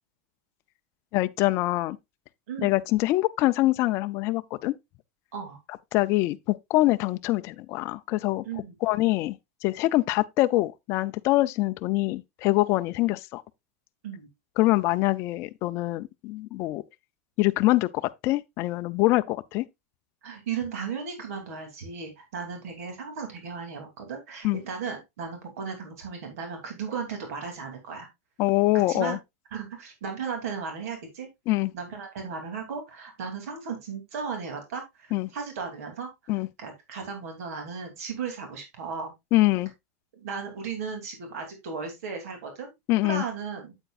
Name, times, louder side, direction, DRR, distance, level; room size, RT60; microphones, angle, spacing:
voice 1, 1.1-2.0 2.6-4.7 5.9-8.4 8.8-9.4 9.6-13.4 14.6-16.8 17.4-19.6 24.4-24.6 28.4-29.2 31.5-31.7 35.1-35.3 36.3-36.5 39.3-39.7 42.9-43.2, left 18 dB, 35° left, 0.4 m, -24 dB
voice 2, 20.2-28.1 28.9-29.2 29.5-31.3 31.7-39.1 40.1-42.7 43.0-43.7, right 6 dB, 70° right, 2.9 m, -36 dB
8.8 x 8.0 x 2.4 m
supercardioid pair, 165°, 8 cm